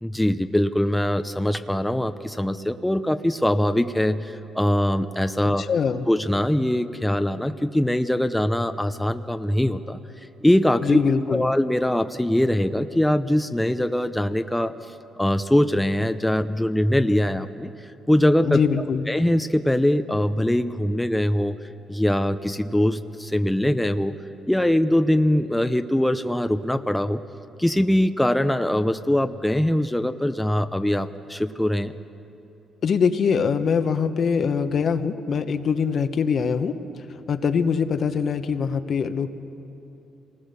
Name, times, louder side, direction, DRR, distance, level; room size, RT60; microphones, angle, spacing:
voice 1, 0.0-5.7 6.1-10.0 10.4-11.0 11.3-17.7 18.1-18.6 19.1-21.6 21.9-24.1 24.5-27.2 27.6-31.9, left 1 dB, 5° left, 9 dB, 0.7 m, -22 dB
voice 2, 5.4-6.1 10.8-11.5 18.4-19.0 32.8-36.8 37.1-39.3, left 6 dB, 55° left, 9 dB, 1.1 m, -23 dB
26.5 x 19.5 x 6.9 m, 2.9 s
cardioid pair, 90°, 0 cm